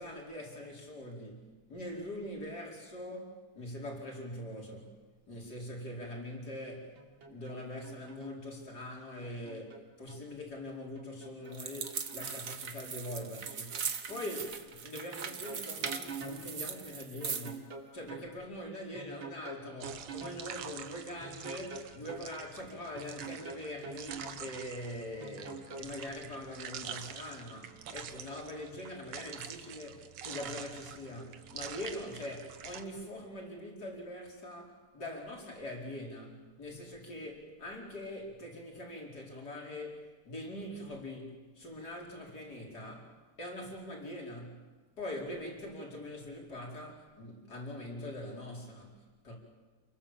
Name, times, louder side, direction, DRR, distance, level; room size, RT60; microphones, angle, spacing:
voice 1, 0.0-5.0 5.3-7.0 7.3-44.7 45.0-48.9 49.3-49.4, left 1 dB, 45° left, 5.3 m, -43 dB
sound 1, 7.0-7.6 7.8-8.4 9.2-10.2 11.0-12.4 13.2-13.8 14.1-14.2 15.0-16.4 17.2-18.3 19.0-20.4 21.2-22.3 23.0-24.4 25.2-26.1, right 4 dB, 65° right, 3.9 m, -46 dB
sound 2, 11.5-17.6, right 6 dB, 45° right, 1.5 m, -40 dB
sound 3, 19.8-32.8, right 8 dB, 85° right, 2.1 m, -46 dB
28.5 x 22.0 x 7.4 m
omnidirectional pair, 2.4 m